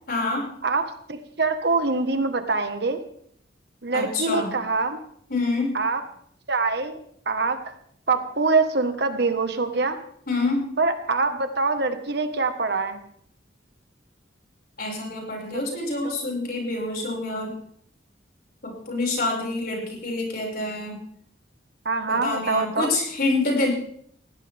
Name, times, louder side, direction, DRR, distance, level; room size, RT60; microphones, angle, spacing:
voice 1, 0.1-0.4 3.9-4.5 5.3-5.8 10.3-10.6 14.8-17.6 18.6-21.0 22.1-23.7, left 2 dB, 55° left, -1 dB, 6.2 m, -26 dB
voice 2, 0.6-3.0 3.8-5.0 5.7-6.0 6.5-7.0 7.2-7.6 8.1-10.0 10.8-13.0 15.5-15.6 16.0-16.2 21.8-23.0, right 3 dB, 60° right, 7 dB, 1.6 m, -24 dB
20.5 x 16.5 x 3.6 m, 0.65 s
head